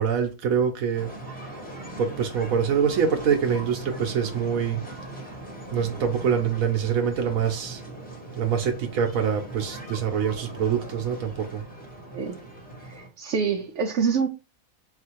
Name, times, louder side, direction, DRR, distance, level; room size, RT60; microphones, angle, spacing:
voice 1, 0.0-1.6 2.0-4.8 5.7-7.8 8.3-11.6, right 7 dB, 80° right, 1.1 m, -25 dB
sound 1, 0.9-13.1, right 2 dB, 5° left, 1.1 m, -40 dB
voice 2, 12.8-14.3, right 6 dB, 65° right, 0.8 m, -26 dB
4.2 x 2.5 x 4.4 m
omnidirectional pair, 1.4 m